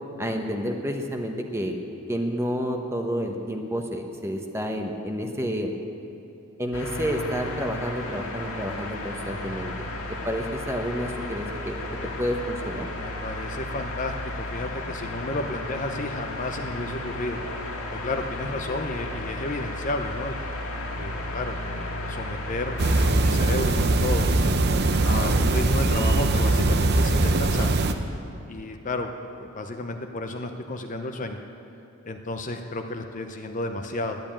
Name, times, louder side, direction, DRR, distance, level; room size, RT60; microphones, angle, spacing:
voice 1, 0.2-1.7 2.1-5.7 6.6-9.9 10.2-11.8 12.2-12.9, equal, 10° right, 3 dB, 0.9 m, -29 dB
sound 1, 6.7-23.1, left 1 dB, 80° left, 1.9 m, -34 dB
voice 2, 12.9-17.4 17.9-20.4 20.9-24.3 25.0-27.7 28.5-29.1 29.4-31.4 32.0-34.2, left 2 dB, 35° left, 5 dB, 0.7 m, -32 dB
sound 2, 22.8-27.9, right 2 dB, 50° right, 0.7 m, -21 dB
11.0 x 10.5 x 8.8 m, 2.9 s
head